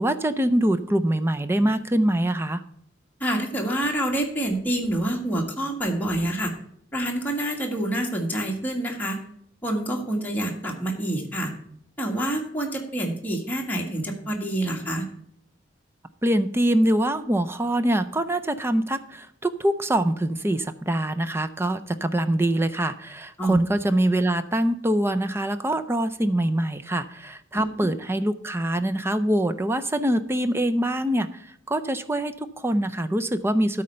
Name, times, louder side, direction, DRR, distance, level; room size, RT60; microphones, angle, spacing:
voice 1, 0.0-2.6 16.2-33.8, right 1 dB, 15° right, 10 dB, 0.5 m, -24 dB
voice 2, 3.2-6.5 6.9-9.2 9.6-11.5 12.0-15.0 23.4-23.6 27.5-27.6, right 1 dB, 10° left, -1 dB, 1.6 m, -27 dB
12.5 x 4.3 x 6.6 m, 0.69 s
head